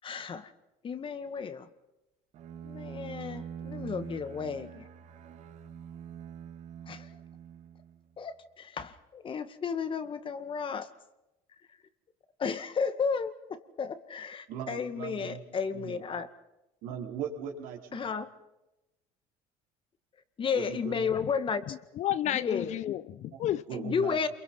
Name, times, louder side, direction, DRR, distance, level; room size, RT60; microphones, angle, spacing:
voice 1, 0.0-0.5 0.8-1.7 2.6-4.8 6.9-7.1 8.2-10.9 12.4-16.3 17.9-18.3 20.4-21.6 22.3-22.8 23.7-24.3, left 6 dB, 40° left, 1.9 m, -33 dB
Bowed string instrument, 2.3-8.2, right 8 dB, 55° right, 2.2 m, -44 dB
voice 2, 14.5-15.4 15.7-16.0 16.8-18.2 20.5-21.1 23.3-23.4 23.7-24.3, right 8 dB, 75° right, 4.4 m, -39 dB
voice 3, 21.7-23.6, left 12 dB, 55° left, 0.9 m, -32 dB
28.0 x 23.0 x 5.6 m
supercardioid pair, 90°, 14 cm